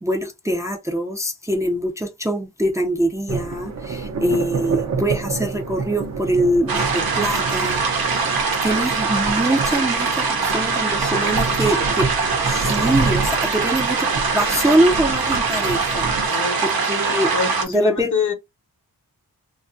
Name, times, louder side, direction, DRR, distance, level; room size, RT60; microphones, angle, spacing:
voice 1, 0.0-8.1 8.6-17.3 17.7-18.1, right 1 dB, 10° right, 0.5 m, -23 dB
sound 1, 3.3-16.3, right 4 dB, 50° right, 0.7 m, -29 dB
sound 2, 6.7-17.6, right 4 dB, 75° right, 0.8 m, -22 dB
voice 2, 11.1-11.8 16.3-16.6 17.3-18.3, left 6 dB, 55° left, 0.8 m, -26 dB
2.6 x 2.3 x 2.6 m
wide cardioid pair, 95°, 36 cm